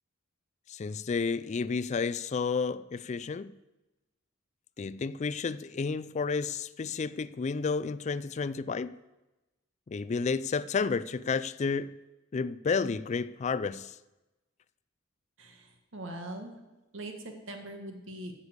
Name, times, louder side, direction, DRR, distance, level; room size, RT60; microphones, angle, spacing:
voice 1, 0.7-3.5 4.8-8.9 9.9-12.0 12.3-13.9, left 5 dB, 35° left, 0.3 m, -31 dB
voice 2, 15.4-16.5 16.9-18.3, right 1 dB, 65° right, 1.6 m, -42 dB
9.7 x 6.9 x 8.0 m
head